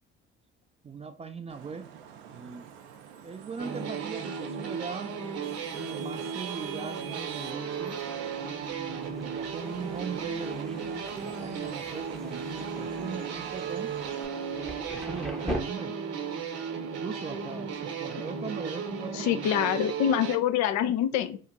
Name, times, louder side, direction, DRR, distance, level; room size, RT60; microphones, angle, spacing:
voice 1, 0.8-1.9 2.3-2.7 3.2-5.1 5.7-8.0 8.7-13.9 14.9-16.0 16.7-19.7, right 5 dB, 20° right, 0.4 m, -40 dB
Vehicle horn car horn honking / Traffic noise roadway noise, 1.5-14.3, right 9 dB, 80° right, 0.6 m, -46 dB
sound 1, 3.6-20.4, right 6 dB, 50° right, 0.8 m, -35 dB
Thunder, 7.8-15.6, equal, ahead, 0.7 m, -42 dB
voice 2, 19.1-21.4, left 10 dB, 60° left, 0.5 m, -26 dB
2.9 x 2.4 x 3.8 m
hypercardioid pair, 55°, 31 cm